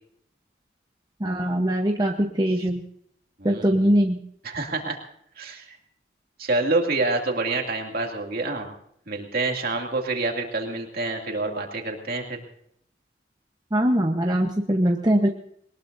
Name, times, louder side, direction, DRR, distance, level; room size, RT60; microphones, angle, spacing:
voice 1, 1.2-2.8 3.4-4.2 13.7-15.3, right 1 dB, 20° right, 2 dB, 0.9 m, -22 dB
voice 2, 3.4-3.9 4.4-5.0 5.4-5.8 6.4-8.7 9.1-12.4, right 3 dB, 55° right, 2 dB, 2.5 m, -27 dB
21.5 x 19.5 x 2.7 m, 0.68 s
head